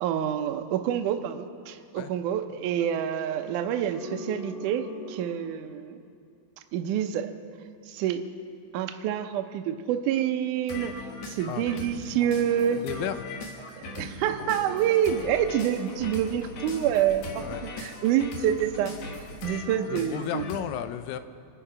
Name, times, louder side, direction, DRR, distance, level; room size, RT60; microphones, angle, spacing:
voice 1, 0.0-6.0 6.7-7.3 7.9-8.2 8.7-12.8 13.8-18.9 19.4-20.4, right 10 dB, 85° right, 7 dB, 1.8 m, -27 dB
sound 1, 3.9-5.6 10.7-20.6, left 2 dB, 55° left, 2.1 m, -40 dB
voice 2, 12.7-13.3 17.4-17.6 19.9-21.2, left 10 dB, 85° left, 11 dB, 2.7 m, -33 dB
26.5 x 10.5 x 4.9 m, 2.5 s
omnidirectional pair, 4.5 m